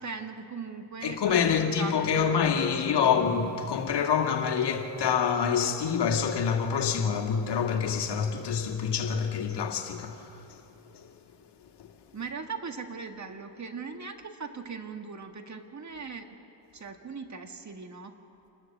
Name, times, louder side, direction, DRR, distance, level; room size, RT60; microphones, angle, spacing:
voice 1, 0.0-3.0 12.1-16.4 16.7-18.1, right 5 dB, 35° right, 1.8 m, -39 dB
voice 2, 1.0-11.1 11.8-11.9, left 7 dB, 55° left, 2.2 m, -27 dB
28.0 x 13.0 x 7.4 m
supercardioid pair, 65°, 50 cm